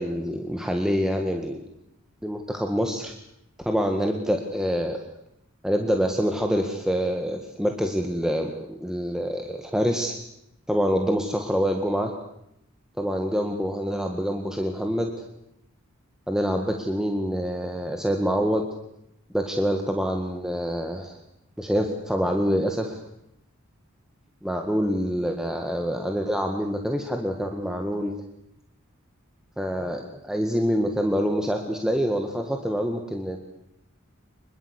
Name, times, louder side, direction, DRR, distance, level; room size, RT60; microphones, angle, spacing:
voice 1, 0.0-1.6 2.2-3.1 3.6-5.0 5.6-10.1 10.7-12.1 13.0-15.2 16.3-18.7 19.3-21.2 21.6-23.0 24.4-28.2 29.6-33.4, equal, 5° right, 3 dB, 1.8 m, -26 dB
24.5 x 22.0 x 8.3 m, 0.80 s
head